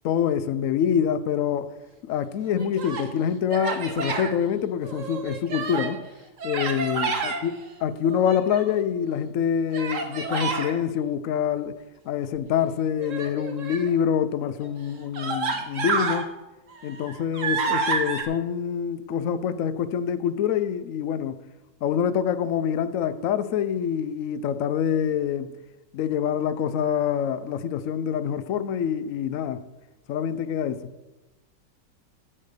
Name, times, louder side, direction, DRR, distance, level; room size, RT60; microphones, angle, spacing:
voice 1, 0.0-1.7 2.0-6.0 6.4-7.5 7.8-11.8 12.1-16.3 16.8-21.4 21.8-25.5 25.9-29.6 30.1-30.9, left 8 dB, 65° left, 0.8 m, -26 dB
Human voice, 2.5-3.1 3.5-4.3 4.8-6.0 6.4-7.4 8.0-8.8 9.7-10.7 13.0-13.9 14.6-14.7 15.1-16.2 16.7-18.2, right 4 dB, 45° right, 1.5 m, -29 dB
8.9 x 8.7 x 6.6 m
omnidirectional pair, 1.9 m